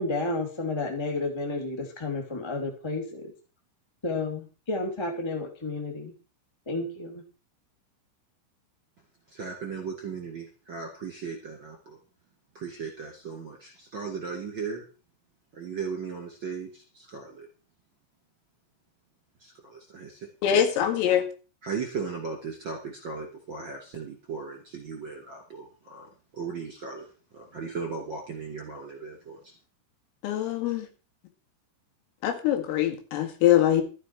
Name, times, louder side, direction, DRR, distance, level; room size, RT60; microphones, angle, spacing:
voice 1, 0.0-3.3 4.0-6.1 6.6-7.2, left 2 dB, 35° left, 1 dB, 0.4 m, -31 dB
voice 2, 9.3-12.0 12.5-14.8 15.5-17.5 19.4-20.3 21.6-27.1 27.3-29.5, right 5 dB, 35° right, 1 dB, 2.1 m, -37 dB
voice 3, 20.4-21.3 30.2-30.9 32.2-33.8, left 10 dB, 85° left, 4 dB, 4.6 m, -23 dB
13.0 x 11.0 x 4.7 m, 0.35 s
omnidirectional pair, 5.8 m